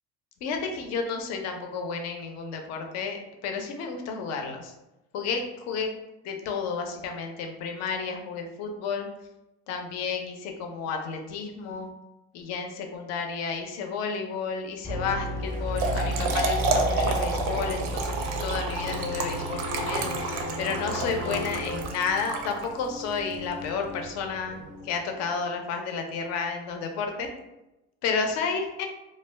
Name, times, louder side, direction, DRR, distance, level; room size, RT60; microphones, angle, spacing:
voice 1, 0.4-4.7 5.1-5.9 6.2-9.1 9.7-11.9 12.3-27.3 28.0-28.9, left 5 dB, 55° left, 4 dB, 0.5 m, -31 dB
sound 1, 14.8-21.8, equal, 5° left, 0.7 m, -32 dB
sound 2, 15.1-25.4, left 1 dB, 25° right, 0.4 m, -45 dB
Trickle dribble / Fill (with liquid), 15.5-23.0, right 3 dB, 75° right, 0.5 m, -30 dB
2.3 x 2.2 x 3.2 m, 0.97 s
cardioid pair, 135°, 31 cm